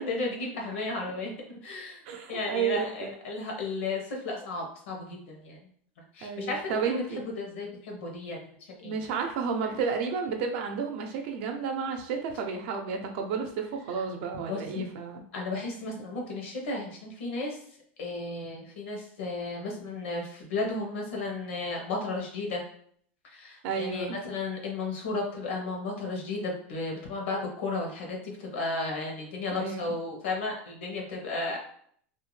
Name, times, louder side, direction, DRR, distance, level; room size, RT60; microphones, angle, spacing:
voice 1, 0.0-2.0 2.3-5.6 6.1-9.0 9.7-9.8 14.5-14.9 15.3-17.6 18.0-22.6 23.2-31.6, left 3 dB, 85° left, 1 dB, 0.9 m, -34 dB
voice 2, 2.1-3.1 6.2-7.3 8.8-15.2 23.6-24.2 29.5-29.9, right 6 dB, 65° right, 4 dB, 0.6 m, -32 dB
2.6 x 2.1 x 3.1 m, 0.62 s
supercardioid pair, 130°, 6 cm